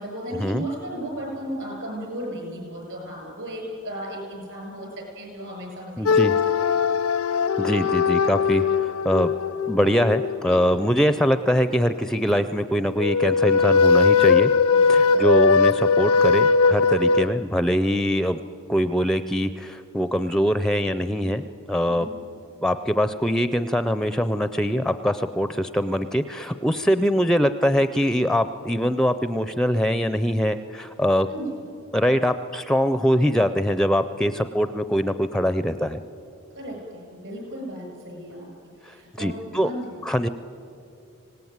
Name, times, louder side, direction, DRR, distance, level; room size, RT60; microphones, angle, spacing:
voice 1, 0.0-6.4 10.5-10.6 14.7-15.2 21.9-22.1 31.3-31.6 36.5-38.5 38.8-40.0, right 1 dB, 60° right, 1 dB, 7.8 m, -35 dB
voice 2, 6.0-6.3 7.3-9.3 9.7-14.5 14.9-18.4 18.7-22.1 22.6-31.3 31.9-36.0 38.8-39.7 40.0-40.3, equal, 5° left, 12 dB, 0.5 m, -23 dB
sound 1, 6.1-11.0 13.0-17.3, left 5 dB, 75° left, 0.6 m, -20 dB
25.5 x 18.0 x 9.5 m, 2.7 s
head